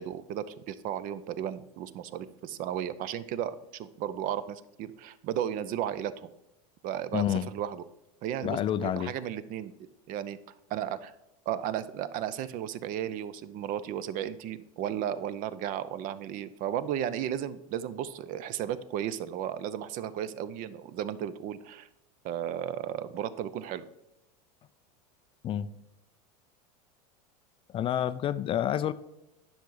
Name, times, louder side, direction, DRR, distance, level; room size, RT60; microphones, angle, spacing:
voice 1, 0.0-6.3 6.8-7.8 8.2-10.4 10.7-11.1 11.5-21.9 22.2-23.8, right 10 dB, 45° right, 15 dB, 0.6 m, -34 dB
voice 2, 7.1-7.5 8.4-9.1 25.4-25.7 27.7-28.9, left 10 dB, 30° left, 14 dB, 0.3 m, -28 dB
10.0 x 5.9 x 3.9 m, 0.91 s
supercardioid pair, 115°, 19 cm